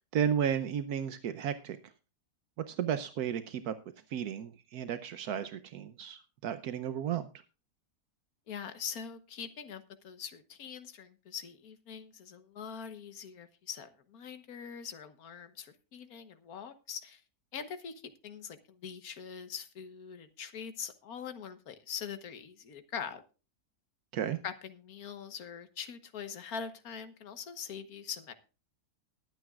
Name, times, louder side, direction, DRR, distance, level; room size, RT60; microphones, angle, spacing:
voice 1, 0.1-1.8 2.7-3.7 4.1-7.3 24.1-24.4, right 9 dB, 80° right, 11 dB, 1.3 m, -33 dB
voice 2, 8.5-17.2 17.5-23.2 24.4-28.3, left 7 dB, 70° left, 10 dB, 1.6 m, -43 dB
21.0 x 9.2 x 2.4 m, 0.32 s
omnidirectional pair, 1.6 m